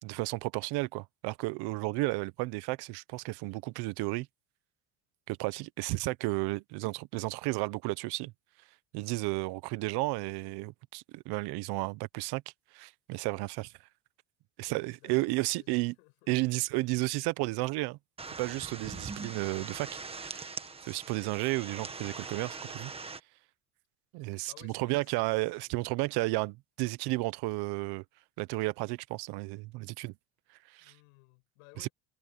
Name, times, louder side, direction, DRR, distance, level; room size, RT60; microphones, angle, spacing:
voice 1, 0.0-4.3 5.3-8.3 8.9-12.4 12.7-13.7 14.6-15.9 16.3-18.0 18.4-20.5 20.9-22.9 24.1-28.0 28.4-30.1 30.7-30.9 31.8-31.9, right 22 dB, 65° right, 1.0 m, -33 dB
voice 2, 14.6-16.3 24.5-26.0 30.8-31.9, left 31 dB, 85° left, 7.3 m, -59 dB
sound 1, 18.2-23.2, right 4 dB, 15° right, 1.5 m, -42 dB
cardioid pair, 130°, 42 cm